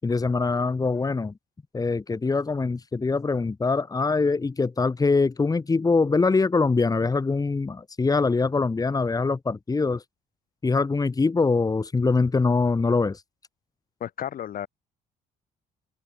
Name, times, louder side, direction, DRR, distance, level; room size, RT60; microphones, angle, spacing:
voice 1, 0.0-1.3 1.7-10.0 10.6-13.2, left 4 dB, 20° left, 5.8 m, -23 dB
voice 2, 14.0-14.7, left 10 dB, 55° left, 7.3 m, -32 dB
cardioid pair, 110°, 17 cm